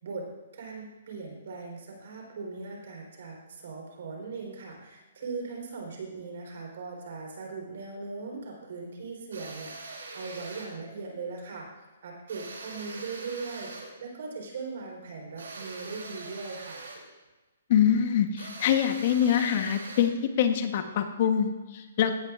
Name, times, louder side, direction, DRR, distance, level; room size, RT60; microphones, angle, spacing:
voice 1, 0.0-11.7 12.0-16.8, right 4 dB, 65° right, 0 dB, 3.7 m, -39 dB
sound 1, 9.3-10.8 12.3-14.0 15.4-17.1 18.4-20.2, right 3 dB, 85° right, 2.9 m, -42 dB
voice 2, 17.7-22.1, left 9 dB, 45° left, 7 dB, 1.1 m, -25 dB
16.0 x 10.5 x 2.5 m, 1.2 s
hypercardioid pair, 150°, 0 cm